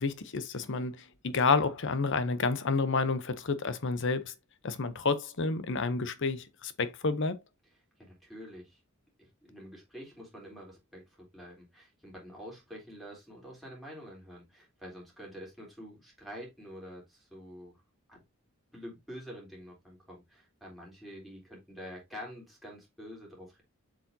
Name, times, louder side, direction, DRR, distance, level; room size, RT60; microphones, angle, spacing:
voice 1, 0.0-4.3 4.6-7.4, left 4 dB, 60° left, 0.8 m, -30 dB
voice 2, 8.0-8.8 9.2-17.8 18.1-18.2 18.7-23.6, equal, ahead, 3.7 m, -47 dB
7.5 x 4.9 x 2.7 m
head